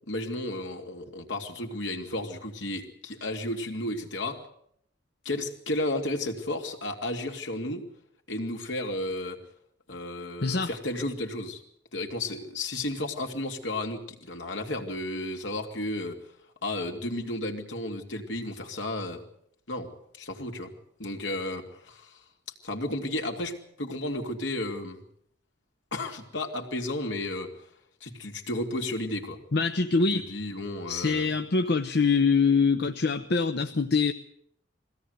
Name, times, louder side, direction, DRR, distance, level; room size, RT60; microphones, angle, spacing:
voice 1, 0.1-4.4 5.2-7.9 8.3-9.4 9.9-11.6 11.9-16.2 16.6-19.2 19.7-19.9 20.2-20.7 21.0-22.2 22.6-25.0 25.9-27.5 28.0-29.4 30.1-31.3, left 1 dB, 80° left, 3 dB, 2.8 m, -33 dB
voice 2, 29.5-30.3 30.9-34.1, left 4 dB, 60° left, 7 dB, 0.9 m, -24 dB
22.5 x 17.0 x 8.1 m, 0.70 s
head